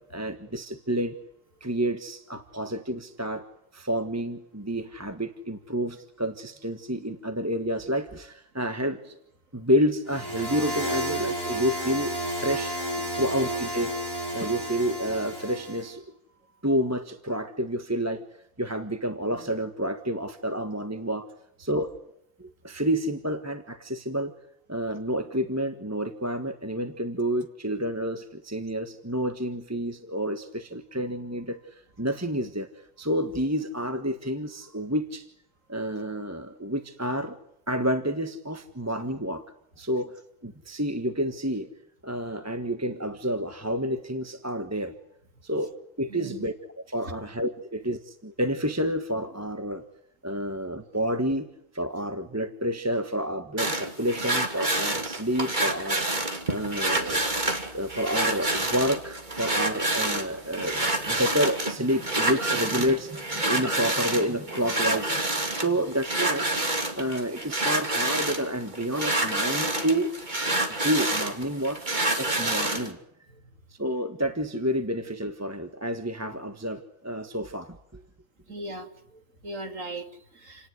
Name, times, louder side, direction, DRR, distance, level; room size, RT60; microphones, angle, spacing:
voice 1, 0.1-1.1 1.6-3.4 3.7-9.2 9.5-12.8 13.1-13.9 14.3-16.0 16.6-18.2 18.6-21.3 21.6-21.9 22.4-24.3 24.7-35.3 35.7-37.4 37.7-39.4 39.8-41.7 42.0-44.9 45.4-45.7 46.0-46.5 46.9-49.8 50.2-51.5 51.7-56.1 56.5-57.3 57.7-65.2 65.5-70.1 70.8-71.8 72.2-73.0 73.7-78.0, equal, 10° right, 8 dB, 1.4 m, -29 dB
sound 1, 10.1-15.9, equal, 15° left, 6.9 m, -31 dB
voice 2, 46.1-46.5 47.0-47.1 73.3-73.5 78.5-80.7, right 1 dB, 70° right, 7 dB, 3.1 m, -39 dB
sound 2, 53.6-72.9, right 2 dB, 35° right, 3.0 m, -28 dB
29.0 x 18.5 x 9.7 m, 0.77 s
omnidirectional pair, 1.4 m